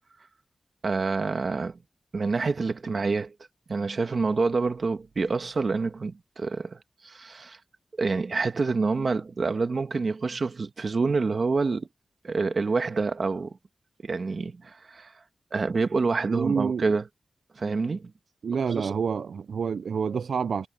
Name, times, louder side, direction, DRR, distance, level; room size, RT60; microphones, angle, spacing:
voice 1, 0.8-1.8 2.1-3.3 3.7-7.6 8.0-11.9 12.2-13.5 14.0-15.1 15.5-17.0 17.6-18.1 18.7-18.9, right 4 dB, 50° right, 1.5 m, -27 dB
voice 2, 16.3-16.9 18.4-20.7, right 6 dB, 90° right, 0.3 m, -28 dB
wide cardioid pair, 145°, 0 cm